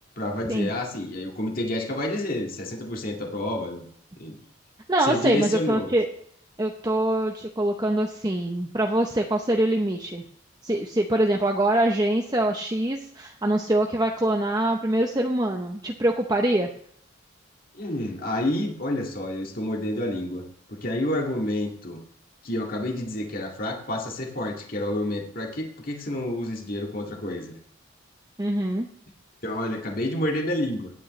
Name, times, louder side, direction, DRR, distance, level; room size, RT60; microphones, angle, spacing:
voice 1, 0.2-3.9 4.2-4.4 5.0-5.9 17.7-20.4 20.7-22.0 22.4-27.6 29.4-30.9, left 1 dB, 45° left, 1 dB, 2.0 m, -29 dB
voice 2, 4.9-6.1 6.6-10.2 10.6-16.7 28.4-28.9, right 1 dB, 20° right, 2 dB, 0.7 m, -24 dB
17.0 x 9.2 x 3.2 m, 0.64 s
head